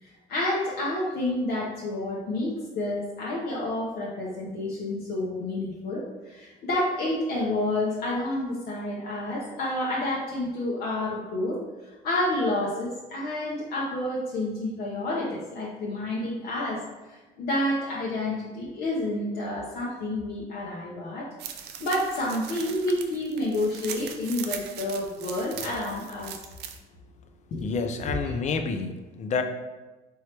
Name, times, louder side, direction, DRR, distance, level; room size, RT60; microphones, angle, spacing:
voice 1, 0.0-11.6 12.0-16.8 17.4-21.3 21.8-26.3 27.5-27.6 28.2-28.3, left 1 dB, 70° left, -5 dB, 0.8 m, -29 dB
sound 1, 21.4-26.8, right 8 dB, 75° right, 0.5 m, -40 dB
voice 2, 27.6-29.4, left 5 dB, 45° left, 7 dB, 0.5 m, -29 dB
4.5 x 3.0 x 3.3 m, 1.1 s
cardioid pair, 110°, 17 cm